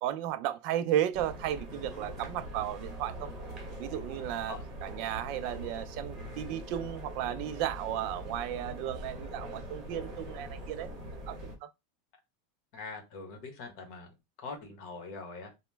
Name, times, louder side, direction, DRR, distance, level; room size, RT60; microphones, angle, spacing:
voice 1, 0.0-3.3 3.8-10.9 11.3-11.7, right 11 dB, 45° right, 0.3 m, -34 dB
sound 1, 1.1-11.6, equal, 25° right, 1.1 m, -42 dB
voice 2, 12.7-14.1 14.4-15.5, left 4 dB, 50° left, 1.0 m, -43 dB
2.9 x 2.1 x 3.3 m
supercardioid pair, 165°, 0 cm